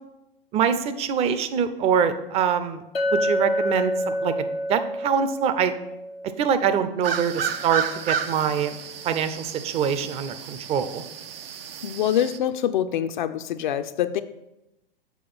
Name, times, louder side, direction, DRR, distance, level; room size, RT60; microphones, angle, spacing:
voice 1, 0.5-2.8 3.1-5.7 6.4-8.7 9.0-11.0, right 7 dB, 20° right, 11 dB, 0.5 m, -24 dB
Chink clink, 2.9-7.2, equal, 85° left, 0.7 m, -28 dB
sound 1, 7.0-12.4, right 7 dB, 75° right, 0.6 m, -32 dB
voice 2, 11.8-14.2, left 10 dB, 55° left, 9 dB, 0.5 m, -25 dB
6.9 x 4.8 x 6.0 m, 0.92 s
figure-of-eight pair, 105°, 29 cm